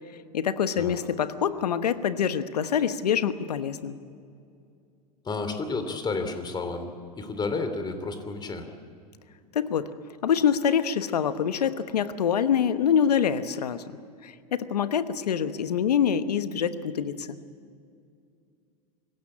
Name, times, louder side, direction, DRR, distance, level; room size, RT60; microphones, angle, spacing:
voice 1, 0.3-4.0 9.5-9.9 10.2-17.4, left 8 dB, 85° left, 12 dB, 1.2 m, -25 dB
voice 2, 5.2-8.7, left 3 dB, 20° left, 8 dB, 3.1 m, -31 dB
26.0 x 16.5 x 8.7 m, 2.4 s
hypercardioid pair, 100°, 20 cm